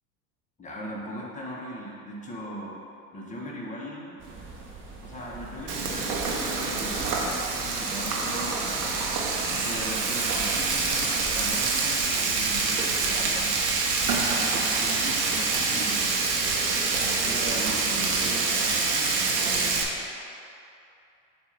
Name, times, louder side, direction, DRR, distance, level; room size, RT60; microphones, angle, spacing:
voice 1, 0.6-2.8 3.1-4.2 5.0-9.2 9.5-13.5 14.3-16.1 17.0-19.3, equal, 15° left, -3 dB, 1.2 m, -39 dB
sound 1, 4.2-18.3, right 3 dB, 25° right, 1.0 m, -44 dB
Frying (food), 5.7-19.8, right 4 dB, 80° right, 0.9 m, -26 dB
6.9 x 2.7 x 5.4 m, 2.7 s
hypercardioid pair, 75°, 47 cm